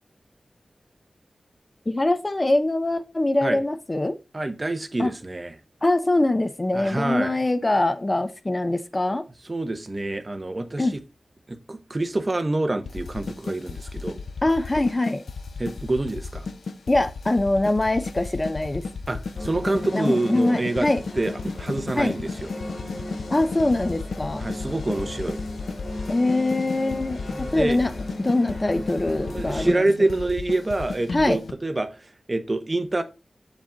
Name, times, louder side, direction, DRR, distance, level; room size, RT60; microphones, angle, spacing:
voice 1, 1.9-4.2 5.0-5.1 5.8-9.3 10.8-10.9 14.4-15.2 16.9-18.8 19.9-21.0 22.0-22.2 23.3-24.4 26.1-27.9 28.2-29.8 31.1-31.4, left 2 dB, 25° left, 0.6 m, -23 dB
voice 2, 4.3-5.5 6.7-7.4 9.4-10.9 11.5-14.2 15.6-16.5 19.1-20.9 21.1-22.5 24.4-25.4 27.3-27.8 29.1-33.0, right 2 dB, 30° right, 0.9 m, -27 dB
sound 1, 12.8-31.5, left 4 dB, 90° left, 0.6 m, -34 dB
sound 2, 19.3-29.7, left 1 dB, 45° left, 3.3 m, -36 dB
7.0 x 5.1 x 3.8 m
wide cardioid pair, 110°, 0 cm